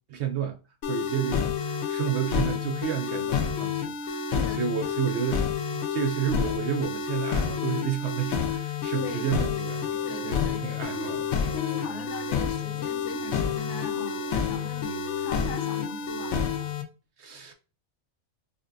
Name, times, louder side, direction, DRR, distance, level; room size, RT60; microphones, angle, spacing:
voice 1, 0.1-0.6 0.9-4.3 4.6-10.0 10.2-11.2 17.2-17.5, right 8 dB, 65° right, 0.8 m, -31 dB
sound 1, 0.8-16.8, left 6 dB, 80° left, 1.2 m, -29 dB
voice 2, 4.3-4.9 8.9-9.3 10.0-11.2 11.5-16.4, left 5 dB, 65° left, 0.9 m, -40 dB
sound 2, 8.8-16.7, left 3 dB, 35° left, 0.4 m, -46 dB
5.2 x 2.1 x 2.5 m
omnidirectional pair, 1.4 m